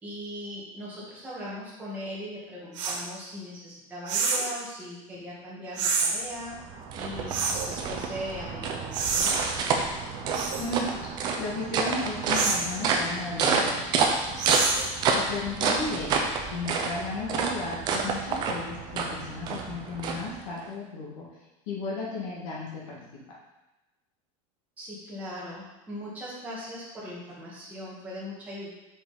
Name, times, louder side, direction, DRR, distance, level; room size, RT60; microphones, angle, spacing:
voice 1, 0.0-6.6 6.9-9.5 24.8-28.7, equal, 10° right, -7 dB, 1.5 m, -39 dB
sound 1, 2.8-3.0 4.1-4.5 5.8-6.1 7.3-7.7 8.9-9.4 10.3-10.7 12.3-12.7 14.4-14.9, right 5 dB, 70° right, 1.0 m, -27 dB
sound 2, 6.2-20.7, right 4 dB, 25° right, 0.5 m, -29 dB
voice 2, 10.6-14.4 14.7-16.1 16.5-21.3 21.7-23.0, left 3 dB, 70° left, -4 dB, 1.7 m, -35 dB
5.1 x 5.0 x 4.0 m, 1.0 s
supercardioid pair, 175°, 17 cm